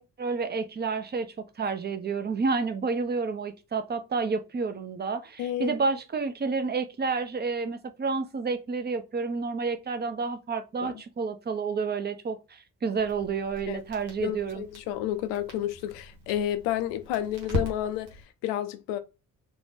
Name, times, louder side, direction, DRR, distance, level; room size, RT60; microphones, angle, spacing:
voice 1, 0.2-14.6, right 4 dB, 25° right, 0.5 m, -30 dB
voice 2, 5.4-5.7 10.8-11.0 13.7-13.8 14.2-19.0, left 12 dB, 70° left, 0.5 m, -31 dB
Crackle, 13.0-18.2, left 1 dB, 90° right, 0.8 m, -39 dB
2.6 x 2.1 x 3.2 m
hypercardioid pair, 45°, 46 cm